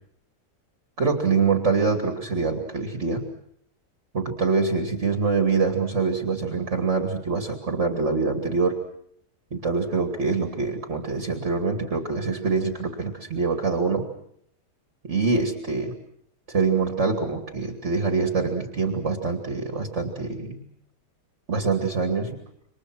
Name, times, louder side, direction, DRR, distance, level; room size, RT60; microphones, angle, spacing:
voice 1, 1.0-3.2 4.1-8.8 9.5-14.1 15.0-15.9 16.5-20.7 21.5-22.4, right 4 dB, 40° right, 5 dB, 2.7 m, -25 dB
28.0 x 25.0 x 6.3 m, 0.69 s
omnidirectional pair, 1.8 m